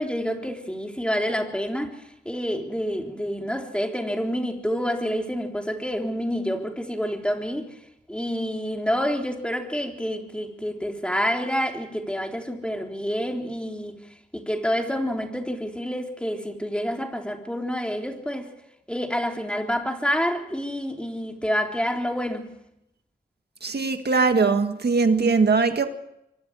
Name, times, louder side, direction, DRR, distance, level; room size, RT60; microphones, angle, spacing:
voice 1, 0.0-2.0 2.3-7.7 8.1-13.9 14.3-18.5 18.9-22.5, equal, 5° left, 3.7 m, -28 dB
voice 2, 23.6-25.9, right 4 dB, 65° right, 1.7 m, -21 dB
26.0 x 24.5 x 4.8 m
wide cardioid pair, 65°, 18 cm